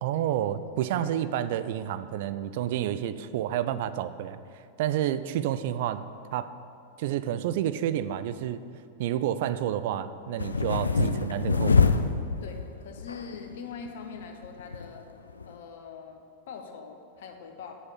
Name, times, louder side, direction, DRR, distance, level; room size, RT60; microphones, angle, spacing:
voice 1, 0.0-4.4 4.8-6.0 6.3-6.5 7.0-8.6 9.0-11.9, right 11 dB, 50° right, 13 dB, 0.3 m, -29 dB
sound 1, 10.4-12.7 13.0-13.5 13.9-14.0 14.2-14.9 15.3-15.4, left 5 dB, 75° left, 0.4 m, -25 dB
voice 2, 12.4-15.0 15.4-17.7, left 6 dB, 55° left, 5 dB, 1.0 m, -43 dB
7.0 x 6.5 x 7.2 m, 2.4 s
figure-of-eight pair, 90°, 0 cm